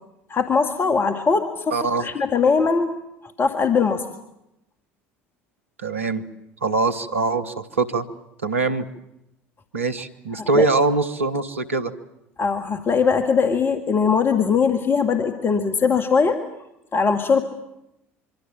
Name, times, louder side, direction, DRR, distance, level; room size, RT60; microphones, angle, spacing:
voice 1, 0.3-2.9 3.4-4.1 10.4-10.7 12.4-16.4 16.9-17.4, left 5 dB, 30° left, 7 dB, 1.9 m, -20 dB
voice 2, 1.7-2.1 5.8-6.2 6.6-8.0 8.4-8.9 9.7-11.9, right 3 dB, 85° right, 10 dB, 1.3 m, -22 dB
25.0 x 24.5 x 7.6 m, 0.87 s
figure-of-eight pair, 65°, 7 cm